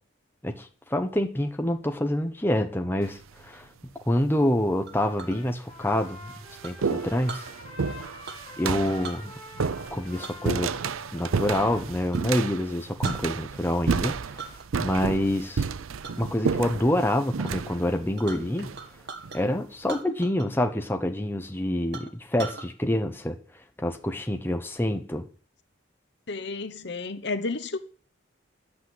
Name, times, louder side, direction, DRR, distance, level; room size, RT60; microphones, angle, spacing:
voice 1, 0.4-3.7 4.1-6.3 6.6-7.5 8.6-9.3 9.9-10.8 11.1-14.5 14.8-15.7 16.2-18.7 19.3-23.4 23.8-25.3, left 1 dB, 10° left, 1.0 m, -27 dB
sound 1, 3.0-3.5 4.4-4.5 5.3-5.4 5.8-19.4, right 5 dB, 85° right, 0.6 m, -31 dB
Chink clink, 4.9-5.4 6.6-7.5 8.2-8.6 8.9-9.2 10.2-11.8 12.1-12.3 12.7-12.8 13.0-13.7 14.0-14.7 15.0-15.4 16.0-16.2 16.7-17.1 17.4-17.5 17.8-19.4 19.8-20.6 20.9-21.0 21.5-21.6 21.9-22.7, right 4 dB, 55° right, 1.7 m, -40 dB
Trumpet, 5.0-12.1, left 2 dB, 25° left, 5.5 m, -47 dB
voice 2, 26.3-27.8, left 3 dB, 55° left, 1.0 m, -31 dB
11.0 x 8.5 x 7.9 m
head